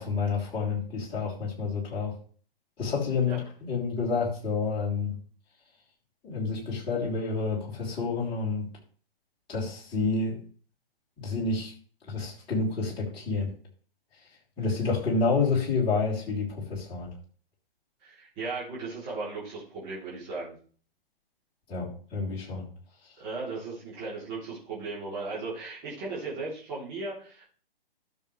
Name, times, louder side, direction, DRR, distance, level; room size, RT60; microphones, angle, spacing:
voice 1, 0.0-2.1 2.8-5.2 6.2-8.7 9.5-10.4 11.2-11.7 12.1-13.5 14.6-17.1 21.7-22.7, left 4 dB, 15° left, -5 dB, 3.3 m, -29 dB
voice 2, 18.0-20.5 23.2-27.5, right 3 dB, 25° right, -7 dB, 3.4 m, -36 dB
13.0 x 6.7 x 3.3 m, 0.43 s
figure-of-eight pair, 130°, 30 cm